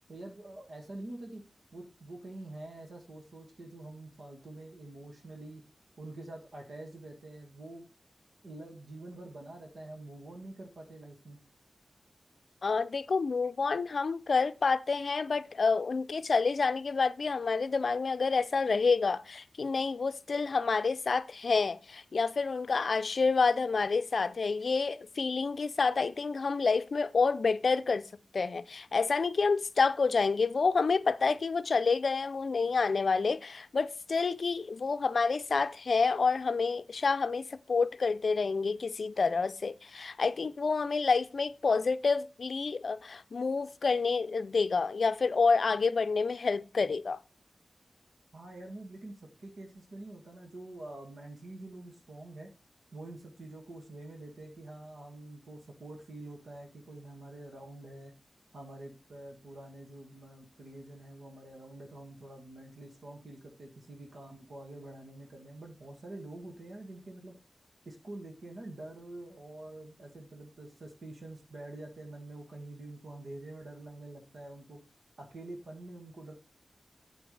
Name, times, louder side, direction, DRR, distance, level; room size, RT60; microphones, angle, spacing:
voice 1, 0.1-1.4 1.7-5.6 6.0-7.9 8.4-11.4 48.3-52.5 52.9-58.1 58.5-67.4 67.9-74.8 75.2-76.3, right 2 dB, 70° right, 2.0 m, -46 dB
voice 2, 12.6-28.0 28.3-47.2, left 4 dB, 60° left, 0.5 m, -28 dB
9.2 x 7.8 x 3.3 m
wide cardioid pair, 120°, 0 cm